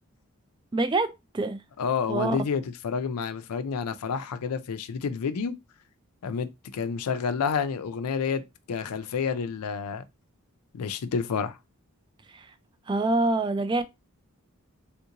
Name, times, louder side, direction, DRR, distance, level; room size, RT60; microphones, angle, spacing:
voice 1, 0.7-1.6 2.1-2.4 12.3-12.5 12.9-13.8, right 2 dB, 20° right, 0.3 m, -26 dB
voice 2, 1.8-5.5 6.2-8.4 8.7-10.0 10.7-11.6, left 6 dB, 90° left, 0.4 m, -29 dB
3.6 x 2.5 x 2.8 m
head